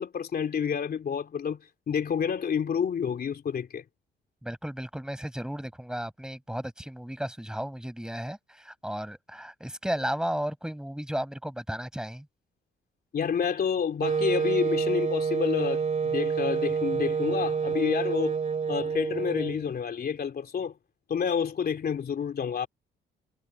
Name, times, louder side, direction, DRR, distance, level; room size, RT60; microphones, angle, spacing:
voice 1, 0.0-1.6 1.9-3.8 13.1-18.4 18.7-20.7 21.1-22.7, left 7 dB, 50° left, 3.0 m, -29 dB
voice 2, 4.4-12.3, equal, 5° right, 6.1 m, -34 dB
Wind instrument woodwind instrument, 14.0-19.7, right 6 dB, 35° right, 2.3 m, -28 dB
cardioid pair, 90°, 20 cm